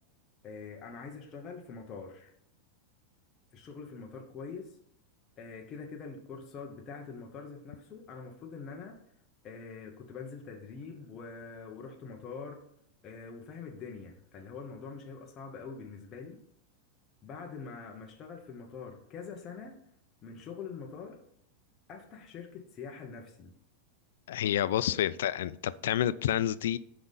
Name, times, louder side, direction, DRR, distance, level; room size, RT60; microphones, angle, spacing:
voice 1, 0.4-2.3 3.5-4.8 5.4-9.0 9.4-12.6 13.0-16.4 17.2-19.8 20.2-21.2 21.9-23.5 24.9-25.0, left 5 dB, 20° left, 1 dB, 0.8 m, -44 dB
voice 2, 24.3-26.8, left 11 dB, 80° left, 17 dB, 0.3 m, -29 dB
5.8 x 5.2 x 4.0 m, 0.72 s
supercardioid pair, 170°, 0 cm